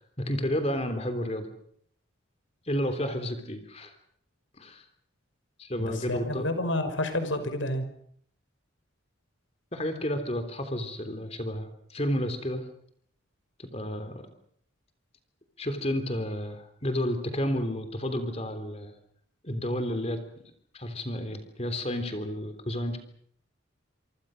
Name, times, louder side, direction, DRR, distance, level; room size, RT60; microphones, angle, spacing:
voice 1, 0.2-1.5 2.7-3.9 4.6-4.8 5.6-6.4 9.7-12.6 13.6-14.2 15.6-18.9 19.4-20.2 20.7-23.0, equal, 30° left, 9 dB, 3.5 m, -31 dB
voice 2, 5.8-7.8, left 1 dB, 70° left, 9 dB, 5.6 m, -29 dB
27.5 x 25.0 x 6.5 m, 0.64 s
head